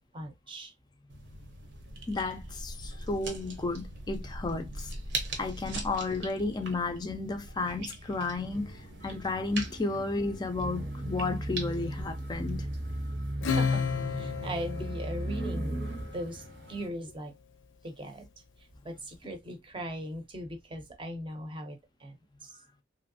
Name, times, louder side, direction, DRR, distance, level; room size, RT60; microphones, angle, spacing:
voice 1, 0.1-0.7 13.5-15.8 16.1-17.3 17.8-18.3 18.8-22.5, equal, 25° right, 0.6 m, -39 dB
sound 1, 1.1-13.2, right 2 dB, 65° right, 0.8 m, -42 dB
voice 2, 2.1-4.9 5.4-12.7, left 3 dB, 25° left, 0.4 m, -33 dB
sound 2, 8.5-16.9, right 1 dB, 85° right, 1.1 m, -37 dB
Acoustic guitar / Strum, 13.4-16.3, left 6 dB, 80° left, 0.5 m, -32 dB
3.0 x 2.6 x 2.6 m
head